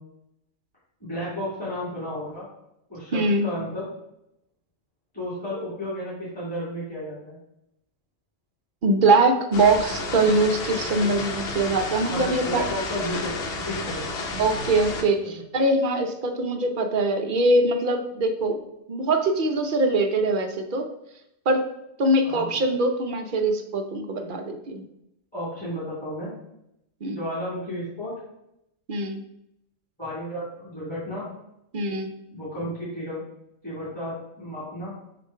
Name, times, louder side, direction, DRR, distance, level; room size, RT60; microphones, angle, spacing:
voice 1, 1.0-2.5 2.9-3.9 5.1-7.4 12.1-14.0 15.3-15.4 22.2-22.5 24.2-24.4 25.3-26.3 27.1-28.1 30.0-31.3 32.3-33.2 33.6-34.9, equal, 5° left, -10 dB, 2.2 m, -33 dB
voice 2, 3.1-3.5 8.8-12.6 14.4-18.6 18.9-20.9 21.5-21.7 22.0-24.8 27.0-27.2 28.9-29.2 31.7-32.1, right 2 dB, 55° right, 6 dB, 0.6 m, -22 dB
sound 1, 9.5-15.0, left 2 dB, 55° left, 0.9 m, -31 dB
6.9 x 2.5 x 5.4 m, 0.83 s
omnidirectional pair, 1.4 m